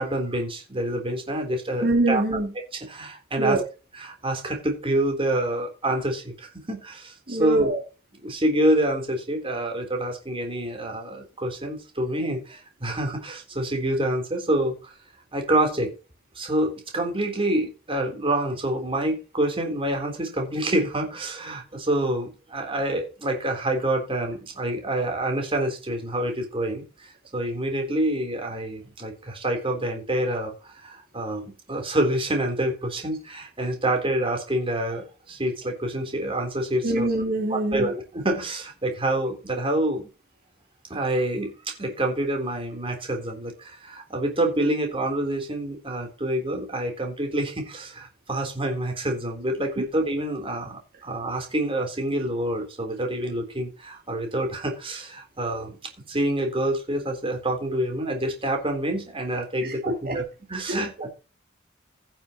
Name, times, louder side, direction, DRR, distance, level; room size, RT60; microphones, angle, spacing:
voice 1, 0.0-2.2 2.8-3.6 3.9-7.7 8.2-14.9 15.3-15.9 16.4-37.1 37.5-40.1 40.9-55.8 56.1-61.1, right 1 dB, 25° right, 3 dB, 3.7 m, -27 dB
voice 2, 1.8-2.5 3.4-3.6 7.3-7.8 36.8-37.9 49.8-49.9 59.6-60.2 60.7-60.8, right 2 dB, 50° right, -1 dB, 2.4 m, -24 dB
16.0 x 7.3 x 3.0 m, 0.31 s
head